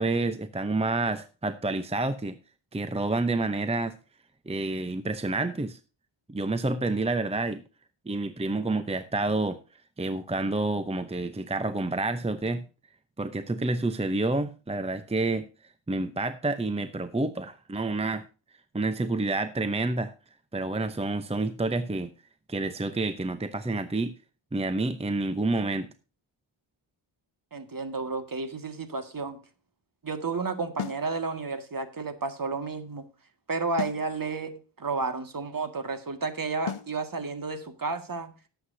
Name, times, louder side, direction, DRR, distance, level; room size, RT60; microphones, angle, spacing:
voice 1, 0.0-2.4 2.7-4.0 4.5-5.8 6.3-7.6 8.1-9.6 10.0-12.7 13.2-15.5 15.9-18.2 18.7-20.1 20.5-22.1 22.5-24.1 24.5-25.9, right 2 dB, 15° right, 11 dB, 0.7 m, -28 dB
voice 2, 27.5-29.4 30.0-33.0 33.5-38.3, right 4 dB, 45° right, 8 dB, 2.0 m, -32 dB
sound 1, 30.8-31.1 33.8-34.1 36.7-37.0, left 9 dB, 90° left, 0.9 m, -34 dB
18.0 x 8.0 x 2.7 m, 0.33 s
wide cardioid pair, 110°, 49 cm